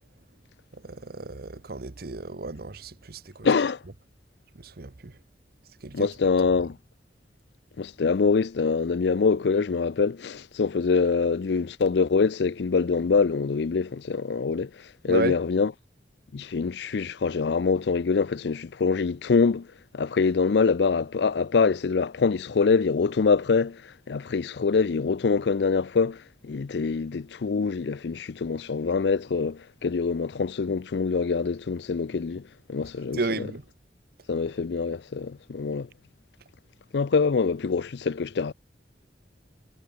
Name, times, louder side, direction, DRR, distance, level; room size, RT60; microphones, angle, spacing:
voice 1, 0.7-3.5 4.5-5.1 5.8-6.1 15.1-15.4 33.1-33.7, right 3 dB, 60° right, 1.0 m, -33 dB
voice 2, 3.4-3.8 5.9-6.8 7.8-14.7 15.0-15.7 16.3-19.7 19.9-32.4 32.7-33.2 34.3-35.9 36.9-38.5, left 5 dB, 70° left, 0.5 m, -24 dB
head